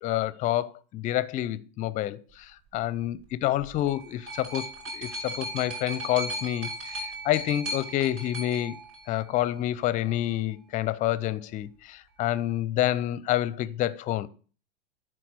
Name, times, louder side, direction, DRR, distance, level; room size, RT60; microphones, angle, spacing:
voice 1, 0.0-8.8 9.1-14.3, left 13 dB, 25° left, 0.5 m, -28 dB
sound 1, 3.6-9.6 10.5-10.6, right 1 dB, 60° right, 6.4 m, -37 dB
10.0 x 4.5 x 7.7 m
figure-of-eight pair, 95°, 33 cm